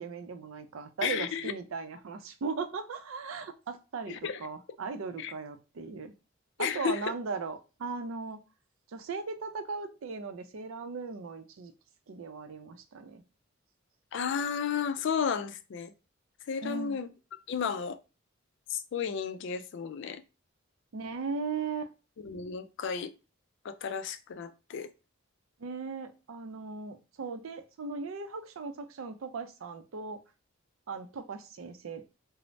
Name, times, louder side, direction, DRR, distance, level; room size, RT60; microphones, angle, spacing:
voice 1, 0.0-6.1 6.6-8.4 8.9-11.7 12.1-13.2 16.6-17.0 20.9-21.9 25.6-30.2 30.9-32.1, right 4 dB, 75° right, 0.4 m, -38 dB
voice 2, 1.0-1.5 4.1-4.4 5.2-5.3 6.6-7.1 14.1-15.9 16.5-17.1 17.5-18.0 18.7-20.2 22.2-23.1 23.6-24.9, left 7 dB, 60° left, 0.3 m, -33 dB
3.1 x 2.0 x 2.5 m
head